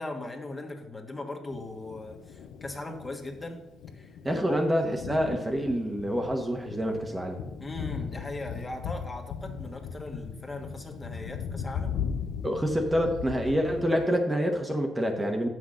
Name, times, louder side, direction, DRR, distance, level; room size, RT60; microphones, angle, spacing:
voice 1, 0.0-3.6 3.9-4.6 7.6-11.9, left 2 dB, 25° left, 2 dB, 1.5 m, -39 dB
Thunder, 1.5-14.1, left 7 dB, 85° left, 0.7 m, -38 dB
voice 2, 4.2-7.4 12.4-15.5, equal, 15° right, 3 dB, 1.2 m, -27 dB
7.9 x 6.1 x 6.4 m, 1.0 s
cardioid pair, 90°, 0 cm